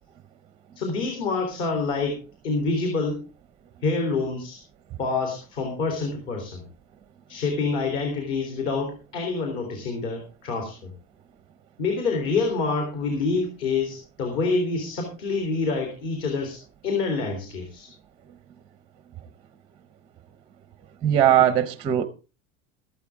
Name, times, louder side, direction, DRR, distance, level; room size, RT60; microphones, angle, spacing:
voice 1, 0.8-3.2 3.8-4.6 5.0-6.6 7.3-10.9 11.8-16.6 16.8-17.9, left 4 dB, 45° left, 3.7 m, -27 dB
voice 2, 21.0-22.0, right 10 dB, 15° right, 0.6 m, -19 dB
14.0 x 12.5 x 3.6 m
supercardioid pair, 175°, 30 cm